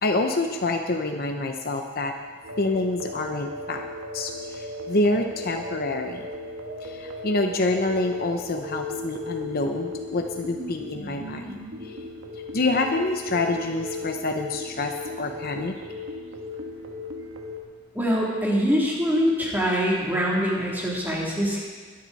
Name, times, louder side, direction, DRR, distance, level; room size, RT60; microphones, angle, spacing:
voice 1, 0.0-2.1 2.6-3.8 4.1-6.3 6.8-12.0 12.5-15.7, left 2 dB, 45° left, 4 dB, 0.9 m, -27 dB
sound 1, 2.4-17.6, left 2 dB, 65° right, 1.8 m, -36 dB
voice 2, 17.9-21.6, equal, 10° right, -5 dB, 3.1 m, -24 dB
21.0 x 10.5 x 4.2 m, 1.5 s
head